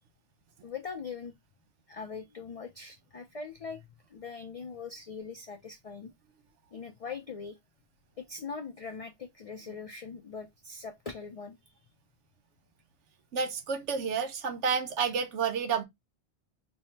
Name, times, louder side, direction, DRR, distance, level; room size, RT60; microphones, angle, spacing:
voice 1, 0.6-1.3 1.9-3.8 4.1-6.1 6.7-7.6 8.2-11.6, left 5 dB, 60° left, 0.4 m, -41 dB
voice 2, 13.3-15.8, right 6 dB, 80° right, 1.0 m, -30 dB
3.5 x 2.1 x 4.3 m
omnidirectional pair, 1.2 m